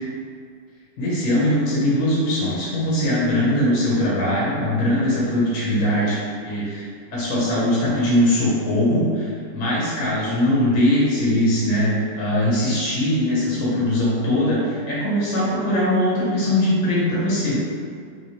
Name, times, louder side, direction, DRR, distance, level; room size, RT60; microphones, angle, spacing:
voice 1, 1.0-6.2 6.4-6.9 7.1-17.6, left 1 dB, 60° left, -7 dB, 0.8 m, -21 dB
2.9 x 2.7 x 2.8 m, 2.2 s
omnidirectional pair, 1.9 m